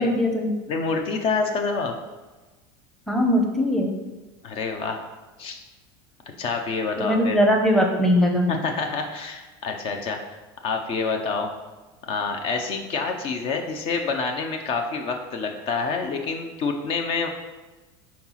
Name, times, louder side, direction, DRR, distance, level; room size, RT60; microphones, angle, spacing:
voice 1, 0.0-0.5 3.1-4.0 7.0-8.5, equal, 5° left, 1 dB, 0.9 m, -20 dB
voice 2, 0.7-1.9 4.4-5.1 5.4-5.6 6.4-7.4 8.5-10.2 10.6-11.5 12.1-17.3, left 4 dB, 45° left, 4 dB, 0.8 m, -27 dB
4.8 x 4.4 x 5.7 m, 1.2 s
supercardioid pair, 130°, 13 cm